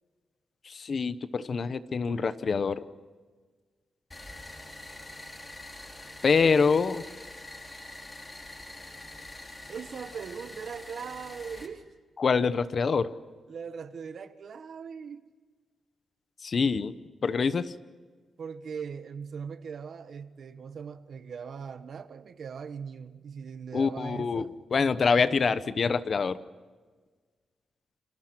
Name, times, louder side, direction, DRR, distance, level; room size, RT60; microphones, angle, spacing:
voice 1, 0.7-2.8 6.2-7.0 12.2-13.1 16.4-16.9 17.2-17.7 23.7-24.5 24.7-26.4, left 5 dB, 45° left, 0.9 m, -25 dB
sound 1, 4.1-11.7, left 2 dB, 20° left, 3.3 m, -45 dB
voice 2, 9.7-11.8 13.5-15.2 18.4-24.5, right 6 dB, 60° right, 1.4 m, -40 dB
29.0 x 25.5 x 6.1 m
wide cardioid pair, 145°, 0 cm